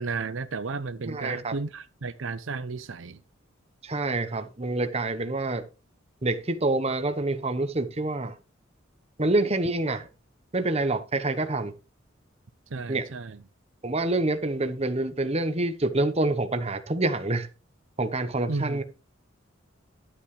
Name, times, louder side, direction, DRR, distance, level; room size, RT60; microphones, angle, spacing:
voice 1, 0.0-3.2 12.7-13.4 18.5-18.8, right 4 dB, 75° right, 0.6 m, -33 dB
voice 2, 1.0-1.5 3.8-5.6 6.2-8.4 9.2-10.1 10.5-11.7 12.9-13.1 13.8-17.5 18.0-18.8, right 2 dB, 30° right, 1.0 m, -27 dB
12.0 x 8.7 x 3.3 m
head